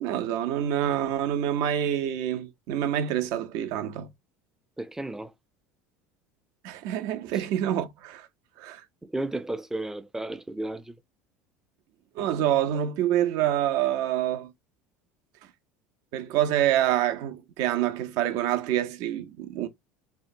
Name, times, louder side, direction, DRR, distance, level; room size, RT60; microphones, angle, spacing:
voice 1, 0.0-4.1 6.6-8.3 8.6-8.8 12.2-14.5 16.1-19.7, right 11 dB, 65° right, 0.5 m, -26 dB
voice 2, 4.8-5.3 9.0-10.9, right 2 dB, 5° right, 0.4 m, -33 dB
2.8 x 2.1 x 2.5 m
hypercardioid pair, 85°, 6 cm